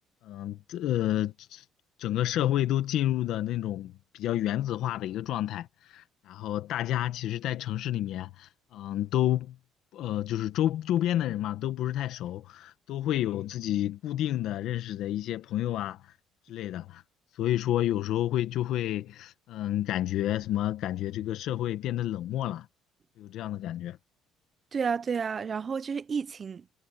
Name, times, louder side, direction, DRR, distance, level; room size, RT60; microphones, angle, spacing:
voice 1, 0.2-1.6 2.0-9.6 9.9-16.1 16.5-17.0 17.3-22.7 23.2-24.0, left 13 dB, 65° left, 1.2 m, -30 dB
voice 2, 24.7-26.7, right 6 dB, 30° right, 0.4 m, -31 dB
cardioid pair, 150°, 0 cm